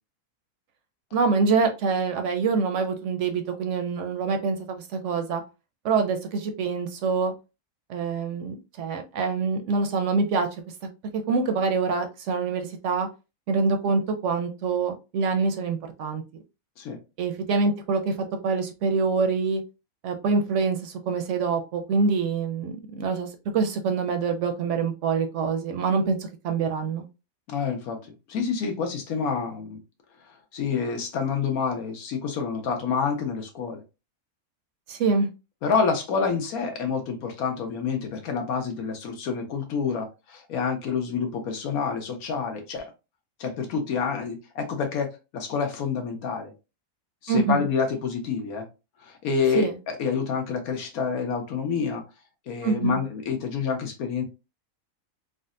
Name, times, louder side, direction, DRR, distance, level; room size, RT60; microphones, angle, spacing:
voice 1, 1.1-5.4 5.8-7.3 7.9-10.5 11.3-13.1 13.5-16.2 17.2-18.1 18.4-19.6 20.0-23.3 23.5-27.0 34.9-35.3 47.3-47.6 49.5-49.7 52.6-53.0, right 4 dB, 65° right, 0.8 m, -25 dB
voice 2, 27.5-29.8 30.3-33.8 35.6-42.9 43.4-46.5 47.2-48.7 49.0-52.0 52.5-54.2, left 5 dB, 85° left, 1.3 m, -28 dB
3.7 x 2.1 x 2.5 m
omnidirectional pair, 1.5 m